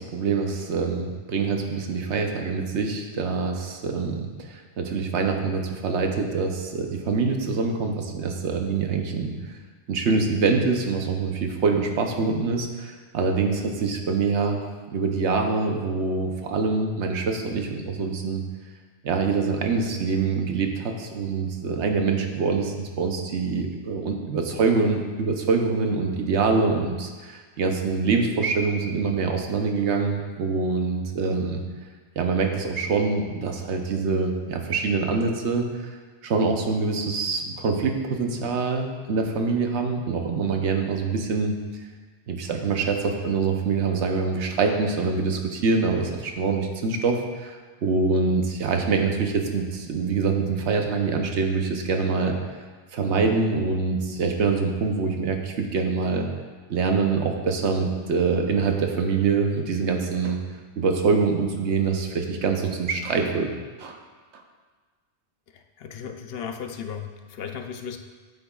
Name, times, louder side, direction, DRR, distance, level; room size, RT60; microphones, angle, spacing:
voice 1, 0.0-9.3 9.9-14.6 14.9-18.4 19.0-31.6 32.2-35.7 36.2-41.5 42.3-52.3 52.9-56.3 56.7-60.4 60.8-63.5 63.8-64.0, right 4 dB, 80° right, 4 dB, 1.1 m, -25 dB
voice 2, 65.5-68.0, left 7 dB, 65° left, 6 dB, 0.8 m, -36 dB
9.1 x 8.0 x 2.4 m, 1.4 s
omnidirectional pair, 1.2 m